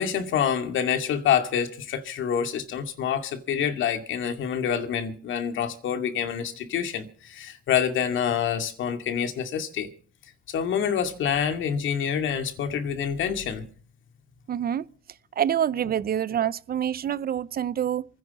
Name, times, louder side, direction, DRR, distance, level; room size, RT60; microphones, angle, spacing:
voice 1, 0.0-9.9 10.5-13.7, left 8 dB, 75° left, 2.3 m, -27 dB
voice 2, 14.5-14.8 15.4-18.0, right 9 dB, 50° right, 0.7 m, -26 dB
27.5 x 10.0 x 4.2 m
cardioid pair, 90°, 20 cm